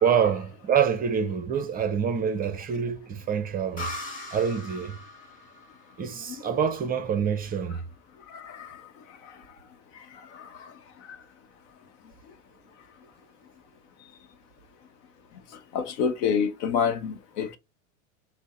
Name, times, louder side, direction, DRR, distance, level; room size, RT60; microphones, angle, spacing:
voice 1, 0.0-3.9 4.3-5.0 6.0-7.8, right 7 dB, 20° right, 0.6 m, -26 dB
sound 1, 3.8-7.3, left 2 dB, 20° left, 1.7 m, -40 dB
voice 2, 8.3-8.8 10.3-10.7 11.1-11.2 15.7-17.6, left 6 dB, 55° left, 0.9 m, -28 dB
6.0 x 2.1 x 4.1 m
hypercardioid pair, 120°, 41 cm